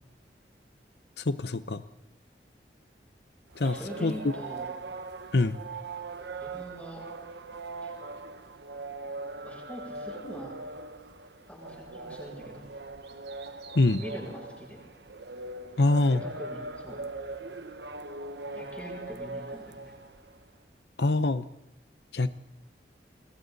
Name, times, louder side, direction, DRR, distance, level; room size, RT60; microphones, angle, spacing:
voice 1, 1.2-1.8 3.6-4.1 5.3-5.6 13.7-14.0 15.8-16.2 21.0-21.4 22.1-22.3, left 2 dB, 75° left, 11 dB, 0.8 m, -24 dB
sound 1, 3.5-20.5, right 3 dB, 80° right, 1.3 m, -41 dB
voice 2, 3.6-4.7 6.4-7.0 7.8-7.9 9.4-10.5 11.5-12.6 14.0-14.8 16.1-17.0 18.5-19.9, equal, 10° left, -1 dB, 7.6 m, -43 dB
29.5 x 22.0 x 4.1 m, 0.86 s
head